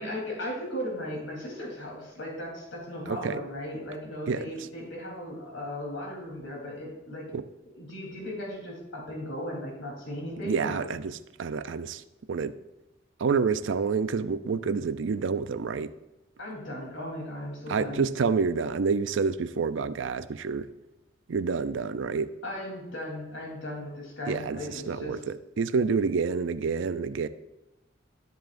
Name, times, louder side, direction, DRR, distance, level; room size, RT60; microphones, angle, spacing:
voice 1, 0.0-7.3 7.8-10.8 16.4-18.1 22.4-25.2, left 1 dB, 90° left, 3.3 m, -37 dB
voice 2, 3.1-3.4 4.3-4.5 7.3-7.5 10.4-12.0 12.3-12.6 13.2-15.9 17.7-20.7 21.3-22.4 24.3-27.3, right 5 dB, 75° right, 0.4 m, -28 dB
12.5 x 7.7 x 2.5 m
head